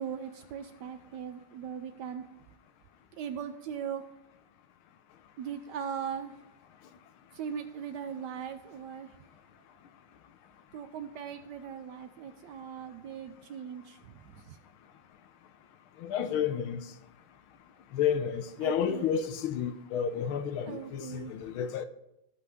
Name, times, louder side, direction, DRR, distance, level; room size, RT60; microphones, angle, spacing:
voice 1, 0.0-2.2 3.2-4.0 5.4-6.3 7.3-9.1 10.7-14.0 14.5-14.6 18.6-19.1 20.7-21.3, right 8 dB, 75° right, 1.0 m, -39 dB
voice 2, 16.0-16.8 17.9-21.8, left 8 dB, 85° left, 1.6 m, -31 dB
15.0 x 5.6 x 3.5 m
omnidirectional pair, 2.2 m